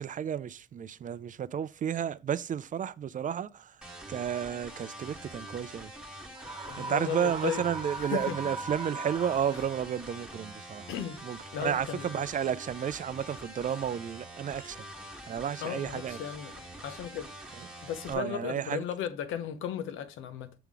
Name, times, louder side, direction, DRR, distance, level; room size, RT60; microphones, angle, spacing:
voice 1, 0.0-5.9 6.8-10.9 11.2-14.8 15.2-16.2 17.6-17.7 18.1-18.8, right 8 dB, 40° right, 0.4 m, -32 dB
sound 1, 3.8-18.1, right 1 dB, 5° right, 1.5 m, -45 dB
Screaming, 6.4-10.0, right 3 dB, 20° right, 1.1 m, -39 dB
voice 2, 6.7-7.6 8.0-8.4 9.5-9.6 10.9-11.2 11.5-12.1 15.6-16.5 16.8-17.3 17.8-20.5, left 9 dB, 90° left, 0.8 m, -35 dB
6.9 x 3.7 x 4.7 m
cardioid pair, 90°, 20 cm